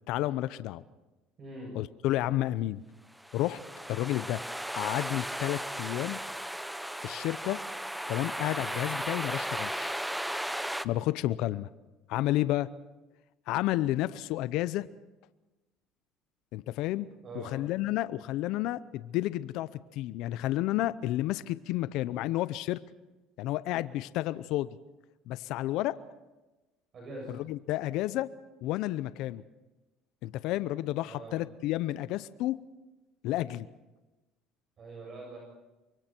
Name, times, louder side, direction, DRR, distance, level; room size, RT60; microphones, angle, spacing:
voice 1, 0.1-0.8 1.7-2.8 3.3-3.6 3.9-4.4 4.8-6.2 7.0-7.6 8.1-10.0 10.8-11.7 12.1-12.7 13.5-14.9 16.5-17.1 17.3-22.8 23.4-24.8 25.3-26.0 27.3-28.3 28.6-29.4 30.2-32.6 33.2-33.7, left 15 dB, 70° left, 15 dB, 0.7 m, -31 dB
voice 2, 1.4-1.7 17.2-17.5 26.9-27.3 31.0-31.4 34.8-35.4, right 2 dB, 40° right, -2 dB, 7.8 m, -43 dB
sound 1, 3.2-10.8, equal, 5° right, 0.8 m, -36 dB
28.5 x 24.0 x 4.5 m, 1.1 s
supercardioid pair, 105°, 0 cm